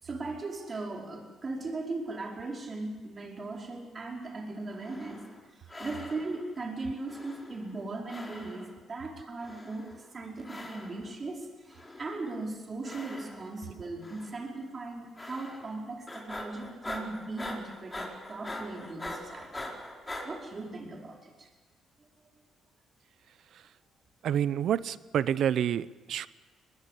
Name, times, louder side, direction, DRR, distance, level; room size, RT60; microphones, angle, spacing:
voice 1, 0.0-5.2 5.6-19.7 20.2-21.5, right 3 dB, 35° right, 1 dB, 5.0 m, -38 dB
sound 1, 4.7-5.4 5.7-6.5 7.1-7.8 8.1-8.8 9.4-10.0 10.4-11.1 11.7-12.3 12.8-13.6 14.0-14.5 15.2-15.8 16.1-20.3, left 1 dB, 15° left, 4.6 m, -43 dB
voice 2, 24.2-26.3, right 9 dB, 70° right, 17 dB, 0.8 m, -28 dB
22.0 x 21.0 x 8.3 m, 1.3 s
cardioid pair, 90°, 0 cm